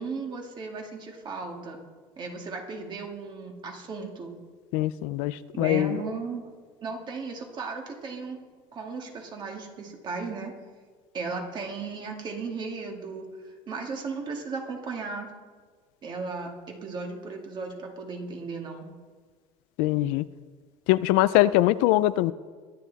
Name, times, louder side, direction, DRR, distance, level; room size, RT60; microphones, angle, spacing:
voice 1, 0.0-1.8 2.2-4.3 5.5-6.4 6.8-8.4 8.7-10.5 11.1-15.3 16.0-18.9, right 4 dB, 35° right, 2 dB, 2.2 m, -35 dB
voice 2, 4.7-6.0 19.8-20.2 20.9-22.3, left 16 dB, 85° left, 15 dB, 0.5 m, -22 dB
22.5 x 9.7 x 4.1 m, 1.5 s
cardioid pair, 150°, 13 cm